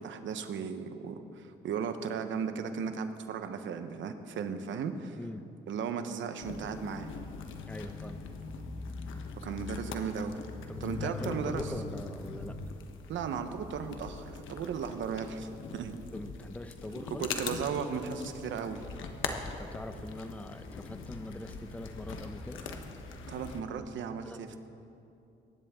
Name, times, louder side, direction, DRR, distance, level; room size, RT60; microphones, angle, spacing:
voice 1, 0.0-5.2 5.7-7.1 9.4-10.4 10.8-11.6 13.1-16.0 17.2-18.8 23.3-24.6, right 6 dB, 70° right, 8 dB, 1.1 m, -36 dB
sound 1, 6.4-23.6, left 4 dB, 80° left, 1.2 m, -41 dB
voice 2, 7.7-8.2 10.7-12.6 16.1-17.3 19.4-22.6 24.2-24.4, left 1 dB, 5° left, 9 dB, 0.7 m, -42 dB
23.0 x 10.5 x 3.8 m, 2.7 s
cardioid pair, 90°, 20 cm